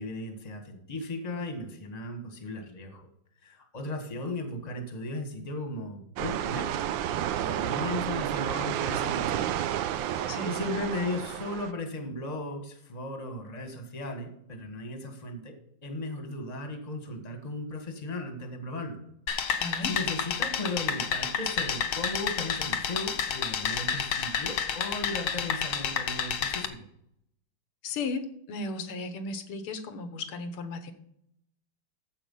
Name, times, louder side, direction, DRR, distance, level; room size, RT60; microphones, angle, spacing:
voice 1, 0.0-3.1 3.4-6.7 7.1-9.6 9.9-15.5 15.8-19.0 19.4-26.9, left 2 dB, 20° left, 5 dB, 1.4 m, -36 dB
sound 1, 6.2-11.7, right 11 dB, 75° right, 1.2 m, -31 dB
sound 2, 19.3-26.7, left 7 dB, 65° left, 1.4 m, -30 dB
voice 2, 19.6-19.9 27.8-30.9, left 3 dB, 85° left, 9 dB, 2.0 m, -35 dB
14.0 x 5.2 x 5.5 m, 0.73 s
omnidirectional pair, 2.3 m